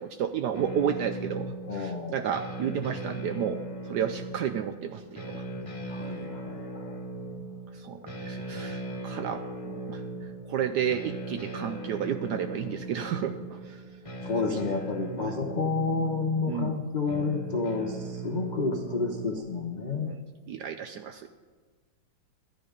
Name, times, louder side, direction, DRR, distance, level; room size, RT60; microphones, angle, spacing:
voice 1, 0.0-5.4 7.7-10.0 10.5-13.8 14.5-14.6 15.2-15.3 16.4-16.8 19.9-20.2 20.5-21.3, right 8 dB, 75° right, 8 dB, 0.9 m, -32 dB
sound 1, 0.5-19.4, right 2 dB, 20° left, 1.1 m, -39 dB
voice 2, 1.7-2.3 5.9-7.0 14.2-20.1, left 4 dB, 75° left, 3 dB, 0.4 m, -30 dB
13.0 x 10.5 x 5.1 m, 1.4 s
omnidirectional pair, 2.2 m